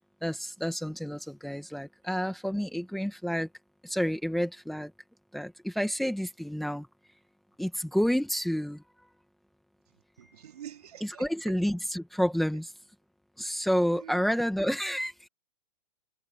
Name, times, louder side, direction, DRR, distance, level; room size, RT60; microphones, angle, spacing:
voice 1, 0.2-3.5 3.8-4.9 5.3-6.9 7.6-9.1 11.0-12.7 13.4-15.3, equal, ahead, 1.7 m, -30 dB
voice 2, 10.2-11.5 14.0-14.1, right 10 dB, 80° right, 3.7 m, -46 dB
hypercardioid pair, 170°, 19 cm